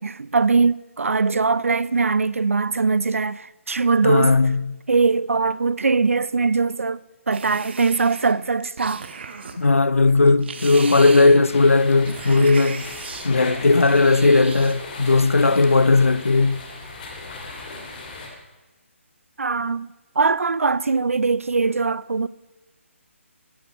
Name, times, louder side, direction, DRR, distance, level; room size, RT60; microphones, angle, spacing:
voice 1, 0.0-4.3 4.9-7.0 7.3-9.0 19.4-19.9 20.2-22.3, right 4 dB, 80° right, 0.5 m, -21 dB
voice 2, 4.0-4.8 9.6-12.9 13.2-16.6, left 3 dB, 90° left, 0.6 m, -17 dB
sound 1, 7.3-9.6 10.1-13.3 13.8-14.7 15.1-15.8, right 5 dB, 55° right, 1.3 m, -36 dB
sound 2, 11.4-18.3, left 3 dB, 40° left, 3.0 m, -37 dB
15.5 x 10.0 x 5.6 m
figure-of-eight pair, 150°, 7 cm